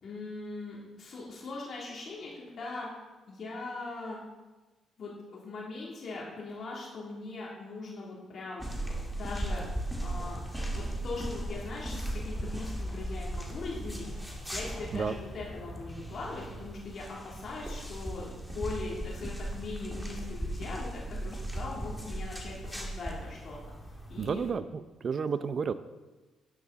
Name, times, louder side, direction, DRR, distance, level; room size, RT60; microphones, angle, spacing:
voice 1, 0.0-2.9 3.3-4.2 5.0-8.7 9.1-9.6 10.0-10.4 10.7-14.1 14.5-23.6 24.1-24.5 25.2-25.3, left 3 dB, 55° left, -4 dB, 3.0 m, -40 dB
sound 1, 8.6-24.5, right 1 dB, ahead, 2.2 m, -37 dB
voice 2, 24.2-25.7, right 6 dB, 45° right, 13 dB, 0.6 m, -31 dB
12.0 x 9.8 x 4.1 m, 1.2 s
cardioid pair, 90°, 0 cm